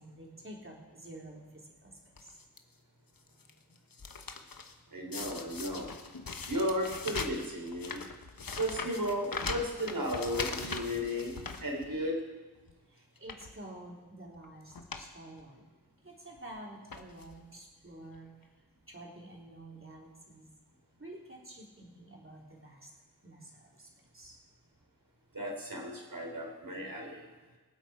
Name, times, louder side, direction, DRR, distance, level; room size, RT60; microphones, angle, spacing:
voice 1, 0.0-2.3 12.9-15.6 16.0-18.5 18.9-20.5 21.0-22.9 23.2-24.4, right 1 dB, 30° right, -2 dB, 3.5 m, -49 dB
sound 1, 2.2-2.6 3.2-4.7 5.1-12.2 12.6-12.7 13.2-13.5 14.3-14.5 14.7-15.1 15.4-15.5 16.4-16.5 16.9-17.4 18.1-18.2 18.4-18.5, left 4 dB, 60° left, 1.2 m, -41 dB
voice 2, 4.9-5.9 6.5-8.0 8.6-12.2 25.3-27.3, equal, 55° right, 1 dB, 3.7 m, -34 dB
23.5 x 8.1 x 4.9 m, 1.3 s
wide cardioid pair, 65°, 40 cm